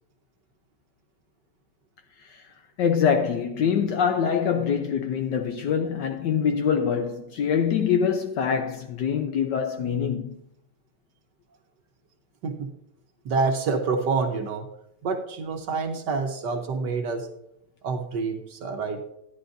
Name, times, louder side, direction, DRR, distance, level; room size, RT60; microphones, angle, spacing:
voice 1, 2.8-10.4, left 7 dB, 75° left, 1.1 m, -24 dB
voice 2, 13.2-14.7 15.0-17.3 17.8-19.0, right 4 dB, 60° right, 1.3 m, -27 dB
11.0 x 10.5 x 2.6 m
omnidirectional pair, 2.4 m